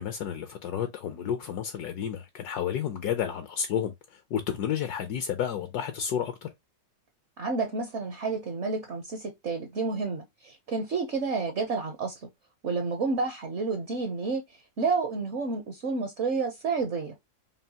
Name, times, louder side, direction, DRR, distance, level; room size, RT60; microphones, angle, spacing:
voice 1, 0.0-6.5, left 9 dB, 70° left, 1.1 m, -31 dB
voice 2, 7.4-12.3 12.6-14.4 14.8-17.2, right 4 dB, 55° right, 0.8 m, -30 dB
5.5 x 2.4 x 2.7 m
omnidirectional pair, 1.9 m